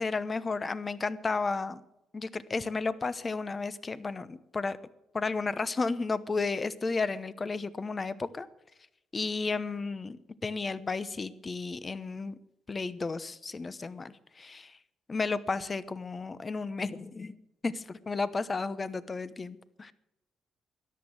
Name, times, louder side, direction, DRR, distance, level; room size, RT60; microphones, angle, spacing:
voice 1, 0.0-1.8 2.1-4.8 5.1-8.5 9.1-12.4 12.7-14.8 15.1-17.3 17.6-17.7 18.1-19.9, left 4 dB, 30° left, 16 dB, 0.9 m, -33 dB
13.5 x 10.5 x 8.0 m, 0.90 s
cardioid pair, 90°, 0 cm